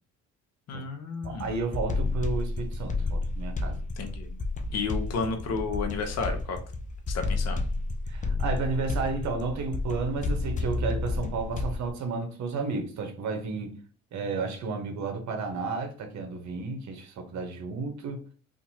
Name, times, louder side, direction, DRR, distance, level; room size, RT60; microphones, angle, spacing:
voice 1, 0.7-1.5 4.0-4.4 4.7-6.6 7.1-7.7, left 4 dB, 45° left, 0.9 m, -32 dB
sound 1, 1.2-11.9, left 3 dB, 20° left, 0.5 m, -31 dB
voice 2, 1.2-3.8 8.1-13.8 14.1-18.2, right 4 dB, 55° right, 1.0 m, -32 dB
2.8 x 2.6 x 2.8 m
hypercardioid pair, 65°, 35 cm